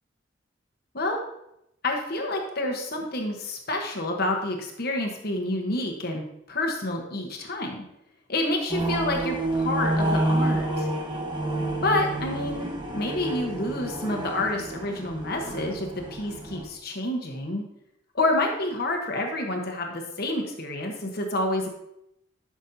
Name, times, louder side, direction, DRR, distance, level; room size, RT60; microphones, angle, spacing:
voice 1, 1.8-7.8 8.3-10.9 11.8-17.6 18.1-21.7, left 2 dB, 55° left, 2 dB, 1.2 m, -28 dB
sound 1, 8.7-16.7, right 1 dB, 25° right, 1.1 m, -29 dB
11.5 x 6.2 x 2.8 m, 0.82 s
head